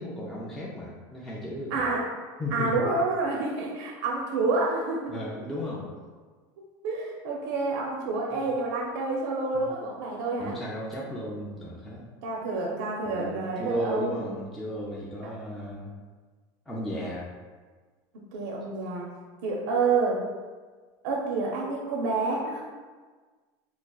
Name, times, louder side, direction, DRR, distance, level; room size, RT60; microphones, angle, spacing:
voice 1, 0.0-1.8 2.4-2.8 5.1-5.9 9.5-9.6 10.4-12.0 13.0-15.9 16.7-17.3, equal, ahead, -6 dB, 0.3 m, -34 dB
voice 2, 1.7-2.0 2.5-5.2 6.8-10.6 12.2-14.2 15.2-15.3 18.3-19.1 19.4-20.2 21.0-22.6, right 3 dB, 70° right, -1 dB, 0.5 m, -28 dB
4.6 x 2.4 x 2.2 m, 1.4 s
supercardioid pair, 155°, 11 cm